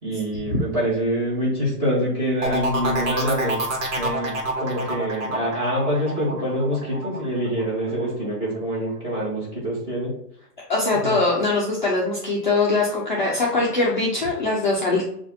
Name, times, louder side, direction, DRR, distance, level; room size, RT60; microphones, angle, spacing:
voice 1, 0.0-3.7 3.9-10.1 10.9-11.1, equal, 10° right, -8 dB, 1.2 m, -25 dB
sound 1, 2.4-8.0 8.4-8.9, right 2 dB, 55° right, 1.3 m, -27 dB
voice 2, 10.7-15.1, left 3 dB, 30° left, -4 dB, 0.4 m, -22 dB
6.1 x 2.4 x 2.6 m, 0.68 s
hypercardioid pair, 160°, 47 cm